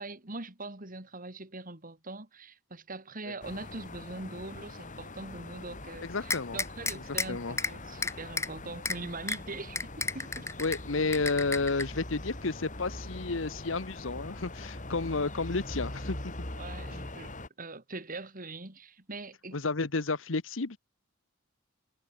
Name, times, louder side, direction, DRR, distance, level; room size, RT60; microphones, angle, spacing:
voice 1, 0.0-10.5 16.6-19.6, right 2 dB, 45° right, 4.2 m, -42 dB
sound 1, 3.4-17.5, left 1 dB, 40° left, 5.4 m, -42 dB
voice 2, 6.0-6.6 6.9-7.0 7.3-7.6 10.6-16.3 19.5-20.8, left 3 dB, 75° left, 1.2 m, -31 dB
sound 2, 6.3-7.3 7.6-7.7 8.0-8.5 8.9-9.0 9.3-9.4 9.8-10.8 11.1-11.8, left 3 dB, 15° left, 2.7 m, -31 dB
head